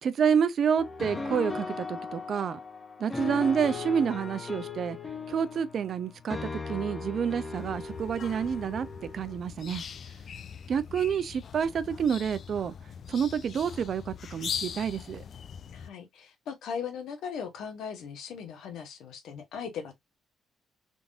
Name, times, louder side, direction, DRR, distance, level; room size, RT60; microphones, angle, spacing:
voice 1, 0.0-2.6 3.0-5.0 5.3-6.4 6.7-8.9 9.1-9.8 10.7-12.7 13.1-15.2, right 7 dB, 55° right, 0.5 m, -28 dB
sound 1, 0.8-9.4, left 4 dB, 25° left, 0.9 m, -38 dB
sound 2, 7.5-15.9, left 7 dB, 55° left, 0.4 m, -41 dB
voice 2, 15.7-20.0, left 7 dB, 80° left, 1.1 m, -38 dB
3.8 x 3.5 x 2.4 m
cardioid pair, 90°, 0 cm